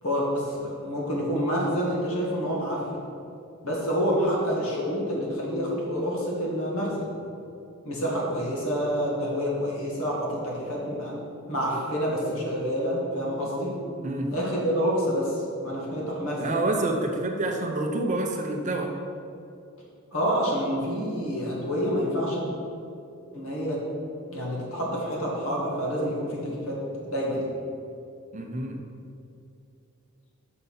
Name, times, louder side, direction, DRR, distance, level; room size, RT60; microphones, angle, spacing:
voice 1, 0.0-2.8 3.6-7.1 7.8-11.1 11.5-13.7 14.3-16.5 20.1-22.5 23.3-23.8 24.3-27.5, equal, 75° left, -4 dB, 2.0 m, -28 dB
voice 2, 16.4-18.9 28.3-28.8, right 2 dB, 35° right, 3 dB, 0.7 m, -27 dB
6.7 x 5.5 x 5.6 m, 2.6 s
head